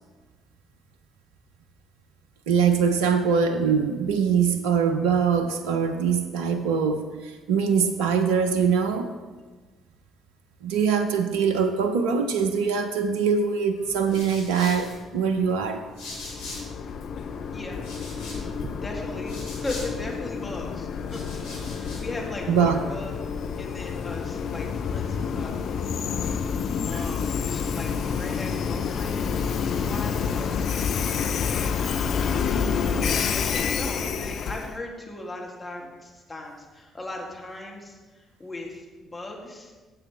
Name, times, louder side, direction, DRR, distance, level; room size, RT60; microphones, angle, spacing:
voice 1, 2.5-9.1 10.6-15.8 18.6-18.7 22.5-22.8 26.9-27.0, right 6 dB, 75° right, 9 dB, 0.6 m, -23 dB
sound 1, 13.8-16.9 17.2-20.4 20.9-22.1, left 2 dB, 80° left, 2.6 m, -43 dB
Train, 16.0-34.7, left 6 dB, 55° left, 0.6 m, -28 dB
voice 2, 18.2-18.5 18.8-23.2 23.6-29.5 29.8-32.0 32.8-39.7, left 2 dB, 20° left, -1 dB, 2.6 m, -38 dB
15.5 x 7.5 x 3.3 m, 1.3 s
figure-of-eight pair, 45°, 0 cm